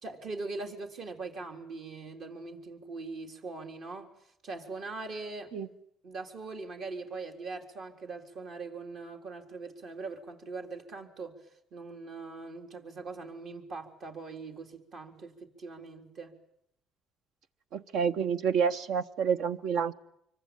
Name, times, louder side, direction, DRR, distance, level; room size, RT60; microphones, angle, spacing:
voice 1, 0.0-4.1 4.4-5.5 6.0-11.4 11.7-16.3, right 3 dB, 60° right, 4.0 m, -41 dB
voice 2, 17.7-19.9, right 6 dB, 75° right, 1.2 m, -28 dB
25.5 x 24.0 x 9.1 m
cardioid pair, 100°, 0 cm